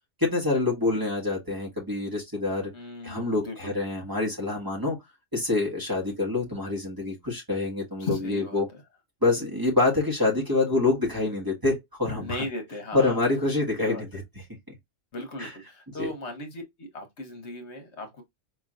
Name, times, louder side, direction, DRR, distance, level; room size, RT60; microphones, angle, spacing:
voice 1, 0.2-2.7 3.0-5.0 5.3-8.7 9.2-12.4 12.9-14.2 15.4-15.5 16.0-16.1, left 3 dB, 15° right, 1.5 m, -26 dB
voice 2, 2.7-3.7 8.0-8.6 12.2-13.3 13.8-14.0 15.1-18.2, left 2 dB, 65° left, 1.3 m, -37 dB
4.7 x 3.0 x 2.5 m
omnidirectional pair, 1.3 m